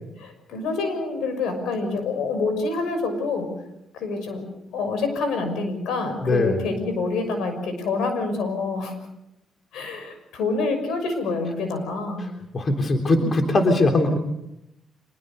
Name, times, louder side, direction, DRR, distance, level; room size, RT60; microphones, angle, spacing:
voice 1, 0.2-3.5 3.9-4.4 4.7-8.9 9.7-12.3, left 3 dB, 85° left, 7 dB, 6.1 m, -27 dB
voice 2, 6.2-6.6 12.5-14.2, left 2 dB, 40° left, 4 dB, 3.5 m, -20 dB
25.5 x 21.5 x 6.8 m, 0.86 s
cardioid pair, 90°, 0 cm